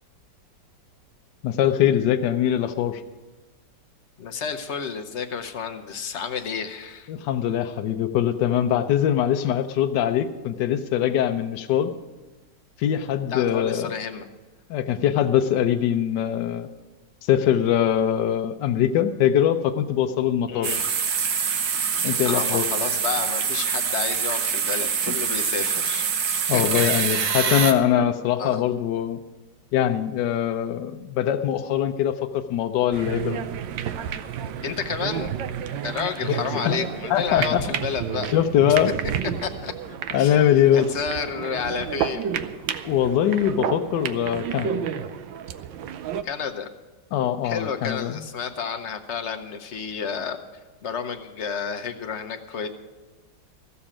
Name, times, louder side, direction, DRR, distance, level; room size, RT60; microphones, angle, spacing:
voice 1, 1.4-3.0 7.1-11.9 12.8-13.9 14.7-16.7 17.2-20.7 22.0-22.7 26.5-29.2 29.7-33.4 36.6-36.8 37.1-37.6 38.3-38.9 40.1-40.9 42.8-44.9 47.1-48.2, left 10 dB, 75° left, 6 dB, 1.3 m, -22 dB
voice 2, 4.2-7.1 13.3-14.3 20.5-20.8 21.5-21.6 22.2-27.0 27.4-27.8 28.4-28.6 34.6-35.3 35.8-38.3 38.7-38.8 39.4-39.7 40.2-40.4 40.7-42.4 46.2-46.7 47.4-50.4 50.8-52.7, left 6 dB, 50° left, 6 dB, 0.9 m, -31 dB
sound 1, 20.6-27.7, right 7 dB, 60° right, 1.4 m, -25 dB
sound 2, 32.9-46.2, right 8 dB, 90° right, 1.4 m, -31 dB
14.5 x 7.0 x 8.6 m, 1.2 s
omnidirectional pair, 2.0 m